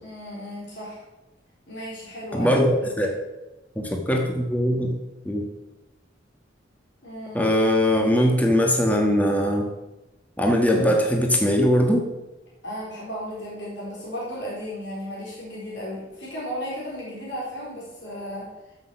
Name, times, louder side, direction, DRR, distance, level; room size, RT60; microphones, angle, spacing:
voice 1, 0.0-1.0 1.7-2.5 3.0-3.1 7.0-7.5 12.6-18.5, equal, 65° left, -5 dB, 3.9 m, -35 dB
voice 2, 2.3-3.1 3.7-4.9 5.2-5.5 7.3-9.7 10.4-12.1, equal, 10° left, 2 dB, 1.4 m, -21 dB
14.0 x 6.3 x 5.8 m, 1.0 s
head